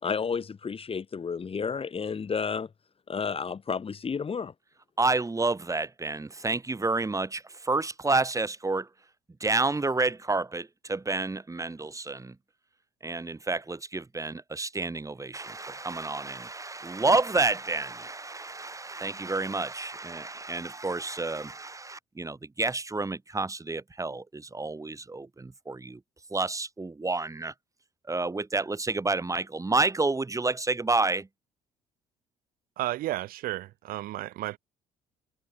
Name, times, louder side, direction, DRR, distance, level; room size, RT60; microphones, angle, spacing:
voice 1, 0.0-2.7 3.1-4.5, left 6 dB, 35° left, 3.7 m, -31 dB
voice 2, 5.0-8.9 9.4-12.3 13.0-26.0 26.3-27.5 28.1-31.3, right 3 dB, 20° right, 4.8 m, -29 dB
voice 3, 32.8-34.6, right 16 dB, 60° right, 5.7 m, -33 dB
figure-of-eight pair, 50°, 16 cm